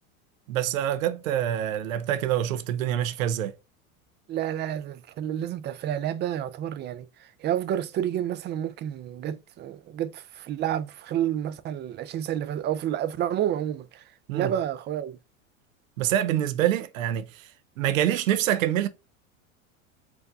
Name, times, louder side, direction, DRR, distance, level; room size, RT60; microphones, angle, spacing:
voice 1, 0.5-3.5 14.3-14.5 16.0-17.5 17.8-18.9, right 11 dB, 80° right, 0.6 m, -26 dB
voice 2, 4.3-14.0 14.3-15.2, right 10 dB, 25° right, 0.4 m, -30 dB
4.5 x 2.6 x 2.4 m
hypercardioid pair, 95°, 40 cm